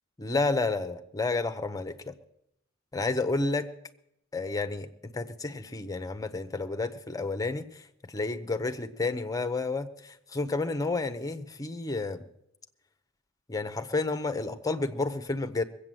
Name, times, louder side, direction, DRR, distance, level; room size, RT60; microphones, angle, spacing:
voice 1, 0.2-2.1 2.9-3.7 4.3-7.8 8.1-12.2 13.5-15.6, left 3 dB, 15° left, 10 dB, 0.8 m, -30 dB
21.0 x 8.4 x 7.6 m, 0.79 s
head